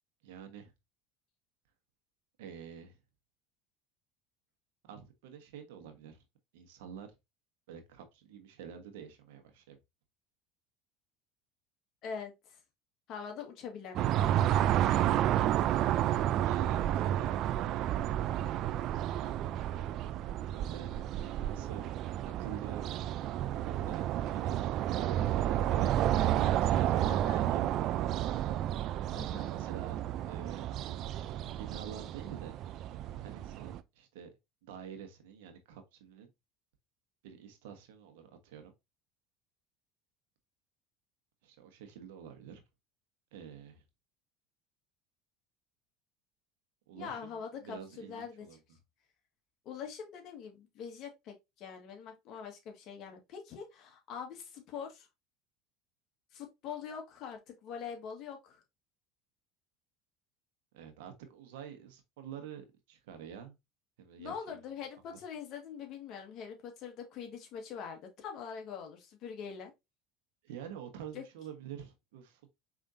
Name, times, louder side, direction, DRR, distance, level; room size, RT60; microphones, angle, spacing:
voice 1, 0.2-0.7 2.4-2.9 4.8-6.2 6.5-7.1 7.7-9.8 16.3-18.0 19.1-19.8 20.3-21.9 22.4-22.9 23.5-26.0 26.6-28.4 29.0-30.9 31.5-32.6 33.2-34.3 34.6-36.3 37.2-38.7 41.4-42.6 43.3-43.8 46.9-48.6 60.7-63.5 64.0-64.6 70.4-72.5, right 8 dB, 80° right, 1.2 m, -48 dB
voice 2, 12.0-12.6 13.1-14.7 27.1-27.4 29.1-29.5 46.9-48.5 49.6-55.1 56.3-58.6 64.2-69.7 71.1-71.2, left 7 dB, 55° left, 1.7 m, -44 dB
sound 1, 14.0-33.8, right 12 dB, 55° right, 0.4 m, -31 dB
5.0 x 3.6 x 2.7 m
hypercardioid pair, 90°, 0 cm